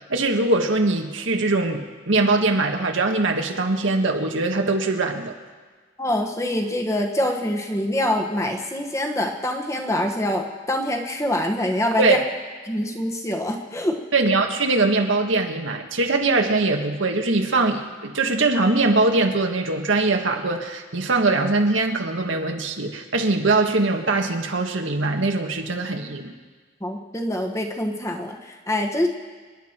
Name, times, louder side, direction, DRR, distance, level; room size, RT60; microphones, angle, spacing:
voice 1, 0.1-5.3 12.0-12.2 14.1-26.3, right 3 dB, 85° right, 3 dB, 1.6 m, -22 dB
voice 2, 6.0-12.2 12.7-14.0 26.8-29.1, left 1 dB, 15° left, 2 dB, 1.3 m, -25 dB
29.0 x 10.5 x 4.5 m, 1.4 s
head